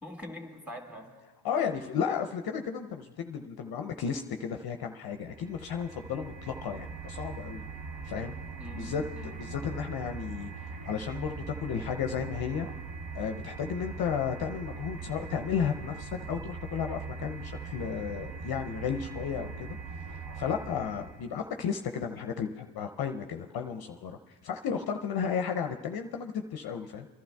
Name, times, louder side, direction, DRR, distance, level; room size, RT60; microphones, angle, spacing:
voice 1, 0.0-1.1 8.6-9.7, left 1 dB, 5° right, 2 dB, 2.1 m, -44 dB
voice 2, 1.4-7.6 8.0-8.3 8.7-9.0 9.4-12.7 13.1-19.8 20.0-27.1, left 7 dB, 50° left, 5 dB, 0.6 m, -33 dB
sound 1, 5.1-21.3, right 4 dB, 45° right, 0.8 m, -41 dB
28.0 x 12.0 x 2.3 m, 1.4 s
supercardioid pair, 60°, 48 cm